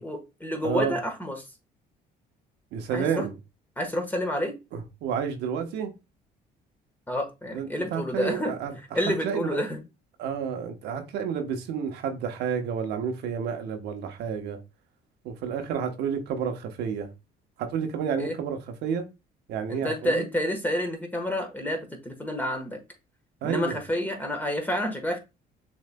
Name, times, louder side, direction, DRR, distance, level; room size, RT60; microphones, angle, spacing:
voice 1, 0.0-1.4 2.9-3.3 3.8-4.5 7.1-8.5 8.9-9.8 18.2-18.3 19.7-22.8 23.4-25.2, left 1 dB, 10° left, 1.3 m, -29 dB
voice 2, 0.6-1.0 2.7-3.3 4.7-5.9 7.5-9.6 10.2-14.6 15.2-17.1 17.6-19.1 19.5-20.3 23.4-23.8, right 7 dB, 80° right, 1.0 m, -30 dB
6.4 x 3.2 x 2.2 m
cardioid pair, 110°, 17 cm